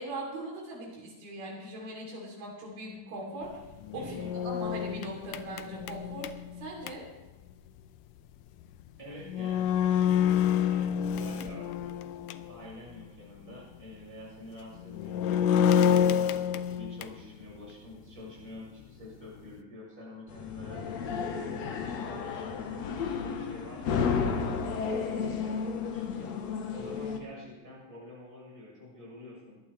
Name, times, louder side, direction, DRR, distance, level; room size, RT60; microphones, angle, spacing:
voice 1, 0.0-3.6 3.9-6.3 6.6-7.1, right 1 dB, 85° right, -2 dB, 5.1 m, -40 dB
sound 1, 3.7-6.9 8.8-8.9 9.3-12.5 12.9-13.0 14.8-17.3, left 8 dB, 80° left, 2.1 m, -28 dB
voice 2, 3.9-4.3 9.0-12.0 12.5-16.4 16.7-21.4 21.9-24.4 24.8-26.3 26.7-29.6, left 1 dB, 15° right, -6 dB, 6.2 m, -47 dB
sound 2, 20.3-27.2, left 6 dB, 60° left, 2.0 m, -32 dB
24.5 x 11.5 x 3.3 m, 1.1 s
omnidirectional pair, 4.2 m